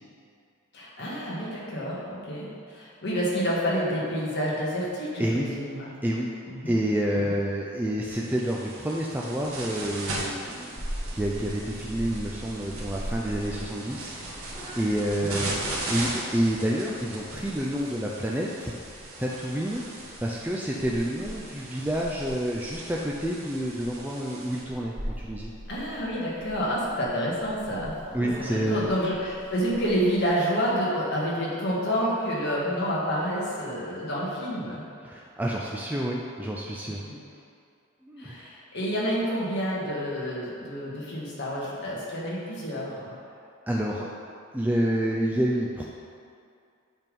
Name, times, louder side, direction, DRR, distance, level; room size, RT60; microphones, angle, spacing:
voice 1, 0.7-5.9 6.5-6.8 15.2-15.5 25.7-34.8 37.1-37.2 38.2-43.1, equal, 50° left, -6 dB, 1.6 m, -29 dB
voice 2, 5.2-5.5 6.0-6.3 6.7-10.8 11.1-15.6 15.9-18.7 19.2-19.8 20.2-25.5 28.1-28.9 35.0-37.0 38.0-38.6 43.7-44.1 44.5-45.8, right 1 dB, 10° right, -3 dB, 0.3 m, -28 dB
sound 1, 8.1-24.6, right 2 dB, 70° right, 1.4 m, -38 dB
Purr / Meow, 10.8-30.3, equal, 30° right, 0.9 m, -42 dB
8.3 x 3.6 x 5.3 m, 2.4 s
head